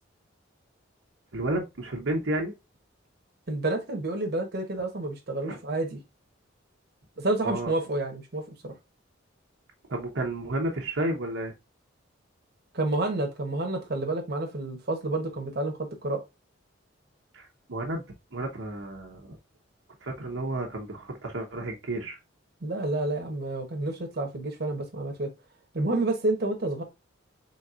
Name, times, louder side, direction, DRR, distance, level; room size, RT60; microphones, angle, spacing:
voice 1, 1.3-2.5 5.5-5.6 7.4-7.7 9.9-11.5 17.3-18.0 18.3-19.4 20.0-22.2, right 1 dB, 80° right, 1.0 m, -31 dB
voice 2, 3.5-6.0 7.2-8.7 12.7-15.7 16.0-16.2 22.6-25.3 25.7-26.8, right 2 dB, 55° right, 1.0 m, -29 dB
4.1 x 3.8 x 2.4 m
head